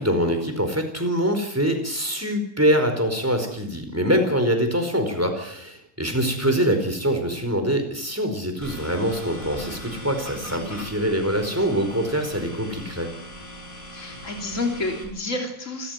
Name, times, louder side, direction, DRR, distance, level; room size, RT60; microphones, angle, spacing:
voice 1, 0.0-13.1, equal, 10° right, 5 dB, 4.7 m, -24 dB
sound 1, 8.6-15.0, equal, 90° left, 7.3 m, -39 dB
voice 2, 13.9-15.9, left 2 dB, 65° left, 2 dB, 3.6 m, -29 dB
28.5 x 14.0 x 9.5 m, 0.72 s
omnidirectional pair, 1.4 m